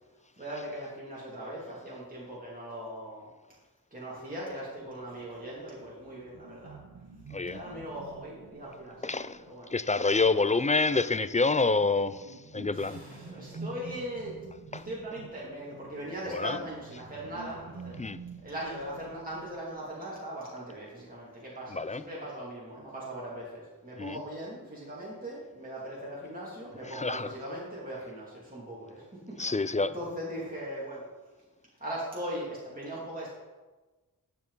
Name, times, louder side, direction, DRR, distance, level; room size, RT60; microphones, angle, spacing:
voice 1, 0.4-3.3 3.9-6.8 7.5-9.8 10.3-10.5 12.6-14.4 14.7-18.0 18.4-31.1 31.8-33.4, right 1 dB, 25° right, 2.6 m, -40 dB
sound 1, 4.8-10.0 10.9-20.2, right 4 dB, 75° right, 1.0 m, -48 dB
voice 2, 9.0-9.4 9.7-12.2 12.5-13.0 14.7-14.8 16.3-16.6 18.0-18.2 21.7-22.0 24.0-24.1 27.0-27.3 29.4-29.9, left 3 dB, 20° left, 0.3 m, -27 dB
11.5 x 7.4 x 4.0 m
wide cardioid pair, 55°, 36 cm